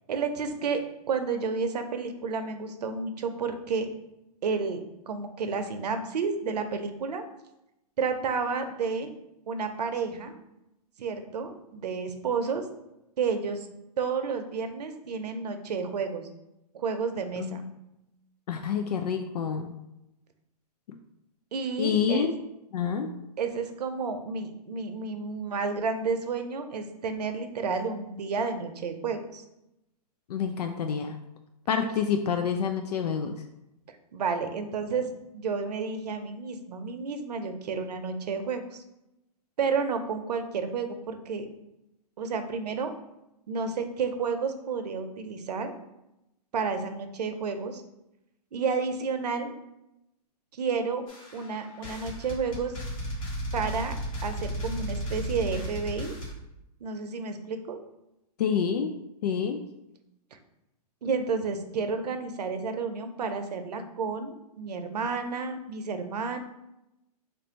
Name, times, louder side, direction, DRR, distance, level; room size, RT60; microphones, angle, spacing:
voice 1, 0.1-0.8 1.1-3.9 4.4-7.2 8.0-9.1 9.5-10.3 11.0-12.7 13.2-13.7 14.0-16.3 16.7-17.6 21.5-22.3 23.4-29.4 34.1-38.8 39.6-41.5 42.2-42.9 43.5-45.7 46.5-47.8 48.5-49.5 50.5-51.0 51.3-52.8 53.5-53.9 54.2-56.1 56.8-57.8 61.0-66.4, right 5 dB, 80° right, 7 dB, 0.6 m, -31 dB
voice 2, 17.4-17.7 18.5-19.7 20.9-21.0 21.8-22.3 22.7-23.1 30.3-31.2 31.7-33.4 58.4-59.0 59.2-59.6, left 7 dB, 75° left, 6 dB, 0.4 m, -28 dB
sound 1, 51.1-56.3, equal, 55° left, 1.3 m, -34 dB
3.3 x 2.5 x 4.3 m, 0.89 s
hypercardioid pair, 135°, 21 cm